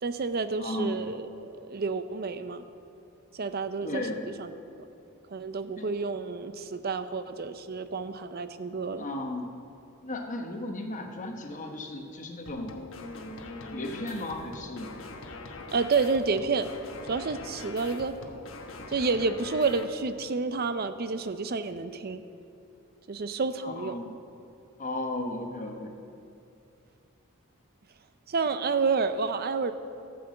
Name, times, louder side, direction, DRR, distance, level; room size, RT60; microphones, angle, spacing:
voice 1, 0.0-2.6 3.3-4.5 4.8-4.9 5.3-9.1 15.7-16.7 17.1-18.2 18.9-22.2 23.1-24.0 28.3-29.7, right 4 dB, 45° right, 11 dB, 0.6 m, -29 dB
voice 2, 0.6-1.1 3.8-4.3 5.8-5.9 9.0-9.6 10.0-12.8 13.7-15.0 23.6-24.2 24.8-25.9, left 1 dB, 35° left, 3 dB, 1.0 m, -35 dB
sound 1, 12.5-19.8, left 2 dB, 65° left, 1.1 m, -42 dB
13.0 x 6.9 x 7.7 m, 2.6 s
head